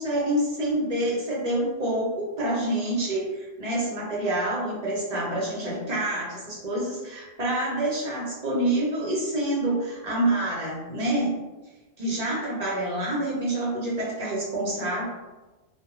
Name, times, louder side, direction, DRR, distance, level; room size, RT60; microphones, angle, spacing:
voice 1, 0.0-11.4 12.0-15.0, right 1 dB, 45° right, -4 dB, 0.7 m, -27 dB
2.3 x 2.1 x 2.9 m, 1.1 s
omnidirectional pair, 1.1 m